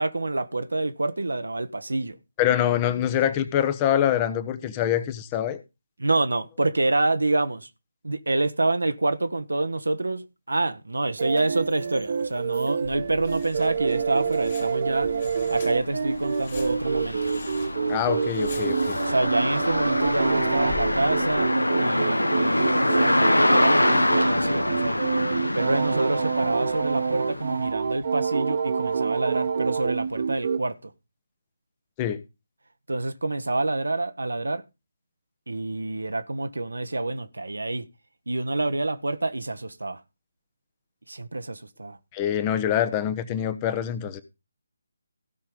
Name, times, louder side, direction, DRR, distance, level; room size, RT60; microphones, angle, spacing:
voice 1, 0.0-2.2 6.0-7.7 8.0-15.1 15.5-17.2 19.1-25.1 25.5-30.7 32.9-34.6 35.5-37.8 38.3-40.0 41.1-42.0, right 2 dB, 75° right, 1.1 m, -27 dB
voice 2, 2.4-5.6 17.9-19.0 32.0-32.2 42.1-44.2, left 10 dB, 20° left, 1.1 m, -25 dB
sound 1, 11.2-30.6, right 5 dB, 45° right, 1.2 m, -27 dB
sound 2, 12.8-21.4, left 6 dB, 45° left, 2.8 m, -44 dB
sound 3, 14.3-14.4 14.8-27.7, left 1 dB, 85° left, 0.9 m, -25 dB
16.0 x 5.8 x 5.3 m
figure-of-eight pair, 150°, 0 cm